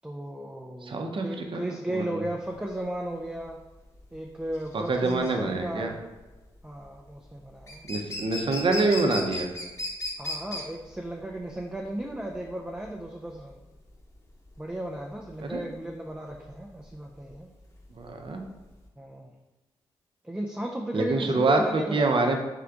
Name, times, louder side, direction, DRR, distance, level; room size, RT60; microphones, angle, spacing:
voice 1, 0.0-3.6 4.1-6.0 6.6-7.9 10.2-13.6 14.6-17.5 19.0-19.3 20.2-22.1, right 1 dB, 10° right, 0 dB, 0.5 m, -35 dB
voice 2, 0.8-1.6 1.9-2.2 4.7-5.9 7.9-9.5 15.4-15.6 17.9-18.4 20.9-22.4, right 3 dB, 50° right, 3 dB, 0.7 m, -26 dB
sound 1, 2.5-18.9, left 1 dB, 25° left, 1.1 m, -38 dB
3.7 x 3.3 x 3.7 m, 1.1 s
supercardioid pair, 45°, 11 cm